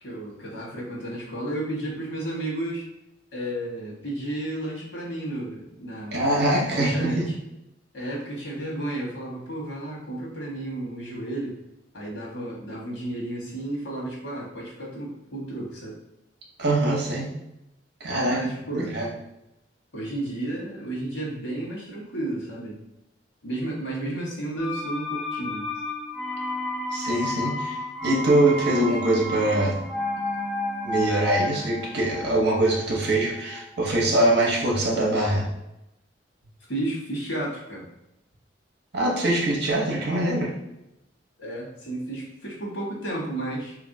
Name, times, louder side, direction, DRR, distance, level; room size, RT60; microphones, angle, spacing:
voice 1, 0.0-2.8 3.3-6.3 6.6-7.3 7.9-11.6 11.9-16.0 18.2-19.0 19.9-22.8 23.4-25.7 36.7-37.9 41.4-43.7, right 1 dB, 85° left, -3 dB, 1.2 m, -32 dB
voice 2, 6.1-7.3 16.6-17.3 18.0-18.4 18.7-19.1 26.9-27.8 28.0-29.8 30.8-35.5 38.9-40.5, right 1 dB, 60° right, -1 dB, 0.8 m, -23 dB
sound 1, 24.6-34.3 34.6-34.7, left 1 dB, ahead, 0.5 m, -32 dB
3.1 x 2.6 x 2.6 m, 0.87 s
head